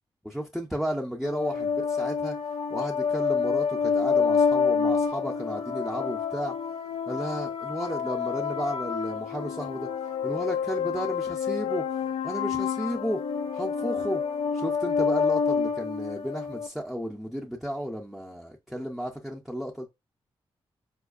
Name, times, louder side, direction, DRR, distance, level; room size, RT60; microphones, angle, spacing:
voice 1, 0.2-1.7 2.0-2.4 2.7-6.5 7.1-9.9 10.2-11.8 12.2-13.2 13.5-14.2 14.5-19.9, equal, ahead, 0.4 m, -33 dB
Space Simple, 1.2-16.7, left 6 dB, 75° left, 0.6 m, -28 dB
4.4 x 2.4 x 2.3 m
wide cardioid pair, 120°, 10 cm